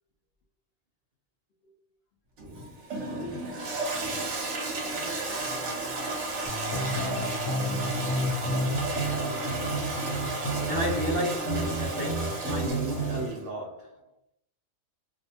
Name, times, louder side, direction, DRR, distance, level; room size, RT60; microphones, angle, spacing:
Toilet flush, 2.4-13.4, right 2 dB, 60° right, 0.9 m, -33 dB
voice 1, 3.0-4.2 4.5-6.7, left 2 dB, 90° left, 0.5 m, -45 dB
Bass guitar, 6.5-12.7, left 8 dB, 20° right, 0.6 m, -43 dB
sound 1, 6.7-13.3, right 1 dB, 70° left, 0.9 m, -31 dB
voice 2, 10.7-14.0, right 1 dB, 80° right, 0.5 m, -33 dB
2.6 x 2.1 x 2.6 m
omnidirectional pair, 1.6 m